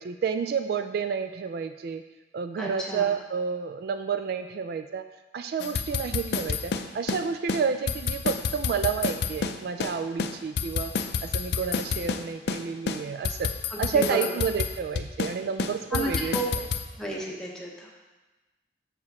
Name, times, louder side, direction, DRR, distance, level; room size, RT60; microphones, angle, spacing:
voice 1, 0.0-2.0 2.3-5.0 5.3-10.9 11.2-13.5 13.8-16.3, right 6 dB, 60° right, 8 dB, 0.3 m, -30 dB
voice 2, 2.6-3.1 13.7-14.3 15.9-16.4 16.9-17.9, right 1 dB, 5° left, -3 dB, 1.0 m, -32 dB
sound 1, 5.6-7.2 7.5-7.6 7.9-9.9 10.2-12.2 12.5-12.6 12.9-15.3 15.6-16.8, left 5 dB, 65° left, 0.4 m, -29 dB
6.8 x 4.8 x 4.2 m, 1.1 s
head